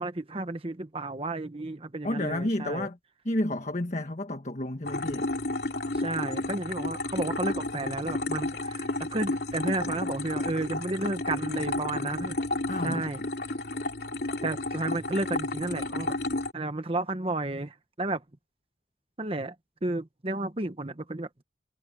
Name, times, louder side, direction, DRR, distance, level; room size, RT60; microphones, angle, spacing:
voice 1, 0.0-2.9 5.9-12.4 12.8-13.2 14.4-16.1 16.5-18.2 19.2-19.5 19.8-21.3, right 2 dB, 30° right, 1.2 m, -32 dB
voice 2, 2.0-3.0 3.2-5.3 12.7-13.1, left 1 dB, 40° left, 1.5 m, -31 dB
sound 1, 4.8-16.5, left 2 dB, 65° left, 3.3 m, -32 dB
head